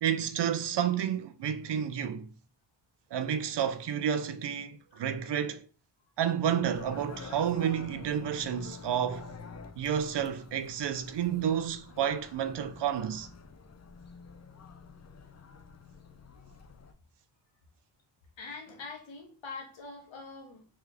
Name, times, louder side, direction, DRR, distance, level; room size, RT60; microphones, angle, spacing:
voice 1, 0.0-2.3 3.1-5.7 6.2-9.3 9.8-13.3, right 9 dB, 55° right, 0.6 m, -30 dB
voice 2, 4.9-5.4 18.4-20.6, left 4 dB, 65° left, 1.6 m, -44 dB
sound 1, 6.6-16.9, left 4 dB, 35° left, 0.6 m, -48 dB
3.4 x 3.3 x 3.4 m
cardioid pair, 70°, 50 cm